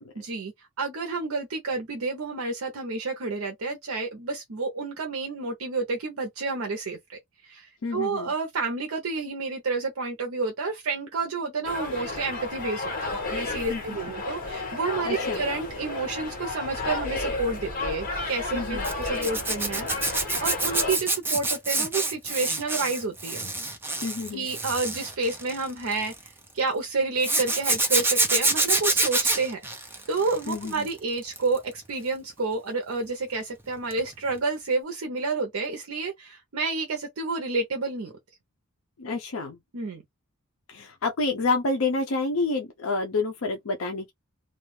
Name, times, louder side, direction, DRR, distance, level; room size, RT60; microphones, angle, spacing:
voice 1, 0.2-23.5 24.3-29.6 30.1-38.1 39.7-40.0, right 3 dB, 70° right, 0.6 m, -30 dB
voice 2, 7.8-8.3 13.7-13.8 15.0-15.4 18.5-18.9 24.0-24.5 30.5-30.9 39.0-39.6 40.7-44.1, left 3 dB, 65° left, 0.5 m, -28 dB
sound 1, 11.6-21.0, left 3 dB, 40° left, 1.4 m, -32 dB
Zipper (clothing), 18.8-26.3 27.2-30.9 31.2-31.6 33.9-34.1 34.3-34.4, right 2 dB, 10° right, 0.6 m, -27 dB
2.5 x 2.3 x 3.1 m
head